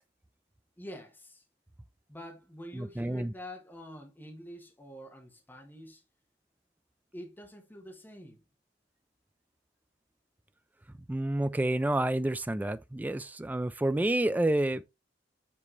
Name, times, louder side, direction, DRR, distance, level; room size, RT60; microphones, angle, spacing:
voice 1, 0.8-1.4 2.1-6.0 7.1-8.4, equal, 10° left, 1.3 m, -46 dB
voice 2, 2.7-3.3 11.1-14.8, right 1 dB, 10° right, 0.3 m, -29 dB
7.5 x 4.1 x 3.2 m
head